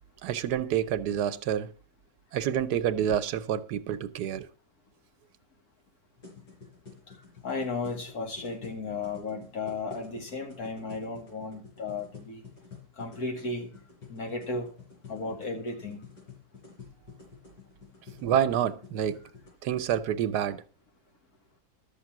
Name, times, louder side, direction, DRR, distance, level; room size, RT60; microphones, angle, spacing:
voice 1, 0.2-1.7 2.3-4.5 18.2-19.2 19.6-20.6, right 9 dB, 85° right, 1.3 m, -28 dB
sound 1, 6.2-19.5, left 5 dB, 85° left, 4.7 m, -50 dB
voice 2, 7.4-12.4 12.9-13.7 14.1-14.7 15.1-16.0, left 3 dB, 65° left, 2.5 m, -34 dB
12.0 x 7.3 x 6.0 m
omnidirectional pair, 1.7 m